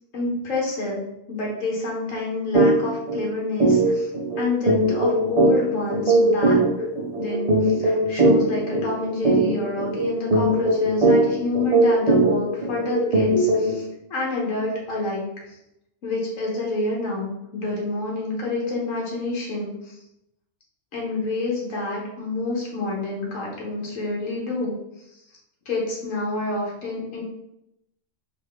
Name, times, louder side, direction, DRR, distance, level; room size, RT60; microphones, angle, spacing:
voice 1, 0.1-1.0 1.3-4.1 4.4-6.6 7.1-15.3 16.0-19.9 20.9-24.7 25.6-27.2, left 2 dB, 75° left, -3 dB, 1.5 m, -28 dB
sound 1, 2.5-2.7 3.1-3.2 3.6-13.8, right 2 dB, 35° right, 0.6 m, -20 dB
4.7 x 3.0 x 3.2 m, 0.82 s
omnidirectional pair, 1.4 m